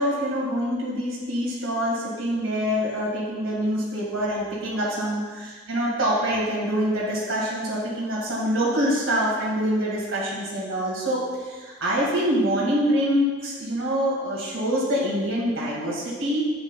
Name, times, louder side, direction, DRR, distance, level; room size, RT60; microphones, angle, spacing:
voice 1, 0.0-16.5, equal, 90° right, -5 dB, 1.9 m, -25 dB
9.1 x 8.0 x 2.3 m, 1.4 s
head